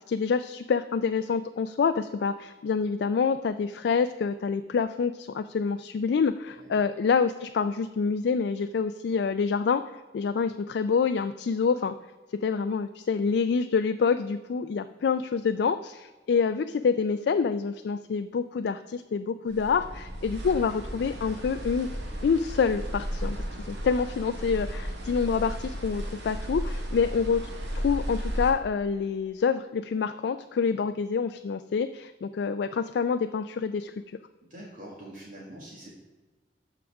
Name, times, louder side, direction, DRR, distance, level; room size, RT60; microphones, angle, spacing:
voice 1, 0.1-9.8 10.1-11.9 12.4-21.9 22.2-27.5 27.7-33.9, left 5 dB, 70° left, 9 dB, 0.3 m, -27 dB
voice 2, 6.4-6.8 19.5-19.8 30.6-30.9 34.4-35.9, right 1 dB, 50° right, -3 dB, 1.6 m, -46 dB
sound 1, 19.5-28.5, equal, 85° right, 1.6 m, -34 dB
13.0 x 4.9 x 3.5 m, 1.3 s
head